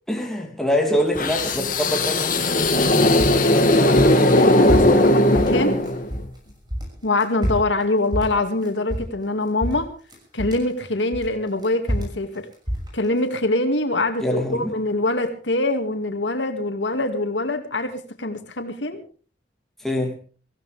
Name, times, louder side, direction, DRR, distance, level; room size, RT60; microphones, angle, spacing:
voice 1, 0.1-3.2 14.2-14.7 19.8-20.2, equal, ahead, 2.9 m, -25 dB
sound 1, 1.2-6.2, left 1 dB, 45° left, 2.5 m, -18 dB
sound 2, 2.9-6.4 6.7-9.3 9.6-10.7 11.1-13.3, equal, 25° right, 6.5 m, -27 dB
voice 2, 3.8-5.8 7.0-9.9 10.3-12.5 12.9-19.0, left 2 dB, 90° left, 2.4 m, -24 dB
24.5 x 15.5 x 3.5 m
head